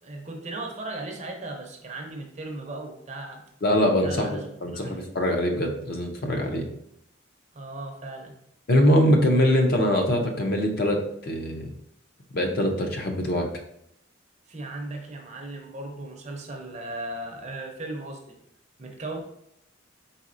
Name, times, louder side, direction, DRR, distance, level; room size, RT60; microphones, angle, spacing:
voice 1, 0.0-3.4 4.0-5.1 7.5-8.3 14.5-18.4 18.8-19.2, right 2 dB, 35° right, 2 dB, 0.6 m, -37 dB
voice 2, 3.6-6.6 8.7-11.7 12.3-13.5, equal, 45° left, 3 dB, 0.6 m, -23 dB
4.2 x 3.9 x 2.5 m, 0.75 s
head